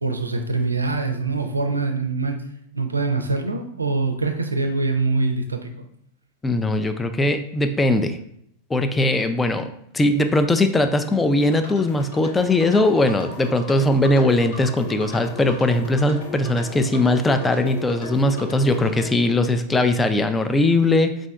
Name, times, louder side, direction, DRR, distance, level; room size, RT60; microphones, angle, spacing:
voice 1, 0.0-2.4 2.7-5.9, right 3 dB, 80° right, 6 dB, 0.4 m, -24 dB
voice 2, 6.4-8.2 8.7-21.1, left 2 dB, 10° left, 8 dB, 0.3 m, -20 dB
sound 1, 11.4-19.1, left 2 dB, 55° left, 0.9 m, -37 dB
5.0 x 2.5 x 2.3 m, 0.72 s
figure-of-eight pair, 90°, 0 cm